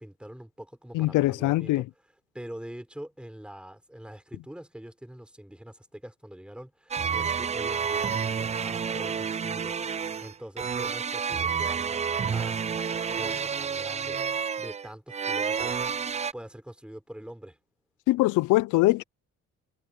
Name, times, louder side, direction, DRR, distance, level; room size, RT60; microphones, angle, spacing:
voice 1, 0.0-1.9 2.3-12.0 12.3-15.8 16.3-17.6, right 1 dB, 5° right, 5.2 m, -44 dB
voice 2, 0.9-1.8 18.1-19.0, left 18 dB, 90° left, 0.5 m, -22 dB
sound 1, 6.9-16.3, right 6 dB, 25° right, 0.4 m, -29 dB
cardioid pair, 90°, 30 cm